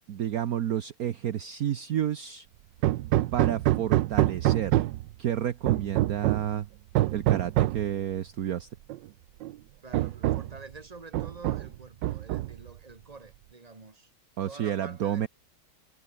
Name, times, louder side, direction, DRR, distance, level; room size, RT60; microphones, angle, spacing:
voice 1, 0.1-2.5 3.3-4.9 5.2-6.7 7.1-8.7 14.4-15.3, right 10 dB, 60° right, 1.3 m, -30 dB
Hammer, 2.8-5.1 5.7-6.5 6.9-7.9 8.9-9.0 9.4-9.5 9.9-10.6 11.1-11.7 12.0-12.7, right 15 dB, 80° right, 1.3 m, -26 dB
voice 2, 9.8-14.1 14.4-15.3, right 3 dB, 20° right, 2.1 m, -47 dB
omnidirectional pair, 2.0 m